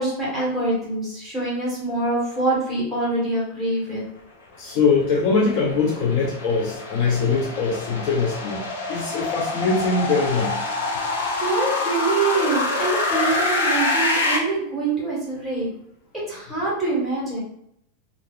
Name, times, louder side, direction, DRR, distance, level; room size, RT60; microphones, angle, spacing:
voice 1, 0.0-4.0 11.4-15.7 16.3-17.4, right 2 dB, ahead, -6 dB, 1.2 m, -25 dB
voice 2, 4.6-10.6, left 4 dB, 45° left, -1 dB, 0.5 m, -22 dB
sound 1, 4.8-14.4, left 2 dB, 80° left, 0.7 m, -26 dB
2.4 x 2.3 x 3.5 m, 0.75 s
supercardioid pair, 150°, 0 cm